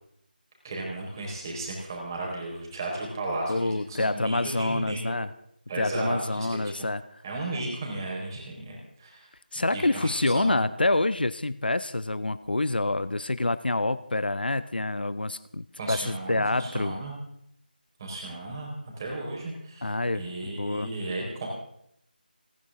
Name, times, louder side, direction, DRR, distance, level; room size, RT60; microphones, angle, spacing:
voice 1, 0.6-5.2 5.7-6.9 7.2-9.3 9.5-10.6 15.8-17.1 18.0-18.7 19.0-21.5, right 2 dB, 25° right, -1 dB, 4.8 m, -35 dB
voice 2, 3.5-5.3 5.8-7.2 9.5-17.0 19.8-20.9, left 2 dB, 70° left, 15 dB, 0.8 m, -27 dB
29.5 x 10.5 x 3.8 m, 0.72 s
figure-of-eight pair, 165°, 5 cm